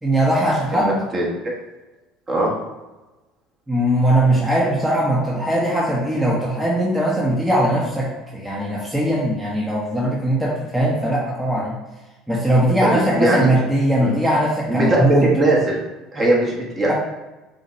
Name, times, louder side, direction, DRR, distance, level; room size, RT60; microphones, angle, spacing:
voice 1, 0.0-1.0 3.7-11.8 12.3-15.3 16.9-17.0, right 1 dB, 5° right, -4 dB, 0.9 m, -20 dB
voice 2, 0.7-1.2 2.3-2.5 12.6-13.5 14.0-14.1 14.7-15.8 16.1-16.9, right 1 dB, 30° right, -2 dB, 1.3 m, -20 dB
6.2 x 2.4 x 3.1 m, 1.1 s
figure-of-eight pair, 65°, 0 cm